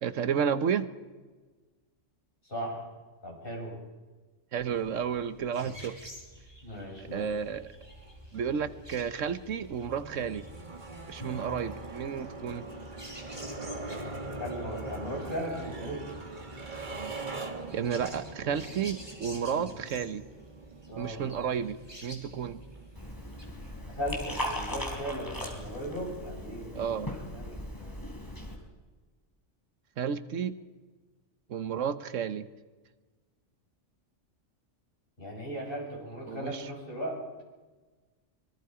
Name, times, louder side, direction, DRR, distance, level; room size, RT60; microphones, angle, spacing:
voice 1, 0.0-0.9 4.5-6.0 7.1-7.7 8.3-10.5 11.1-12.7 17.7-20.2 21.0-21.8 22.0-22.6 26.7-27.1 30.0-30.6 31.5-32.5 36.3-36.6, right 7 dB, 90° right, 13 dB, 1.3 m, -31 dB
voice 2, 2.4-2.9 3.2-3.8 5.5-5.8 6.6-7.4 14.4-16.1 19.5-19.7 20.9-21.3 23.9-28.0 35.2-37.2, equal, 45° left, -2 dB, 6.7 m, -38 dB
sound 1, 4.6-23.7, equal, 20° right, 4.5 m, -51 dB
sound 2, 7.0-26.3, right 2 dB, 40° right, 1.9 m, -43 dB
Liquid, 23.0-28.6, left 1 dB, 15° left, 4.0 m, -38 dB
25.5 x 22.5 x 4.9 m, 1.3 s
omnidirectional pair, 1.3 m